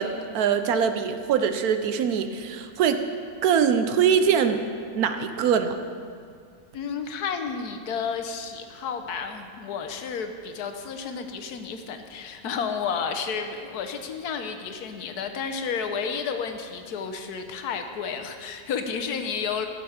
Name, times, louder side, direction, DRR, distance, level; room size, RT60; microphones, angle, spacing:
voice 1, 0.0-3.0 3.4-4.6 5.0-5.8, right 7 dB, 75° right, 8 dB, 1.1 m, -23 dB
voice 2, 6.7-19.7, left 6 dB, 75° left, 7 dB, 1.3 m, -31 dB
14.0 x 6.8 x 4.9 m, 2.2 s
omnidirectional pair, 1.7 m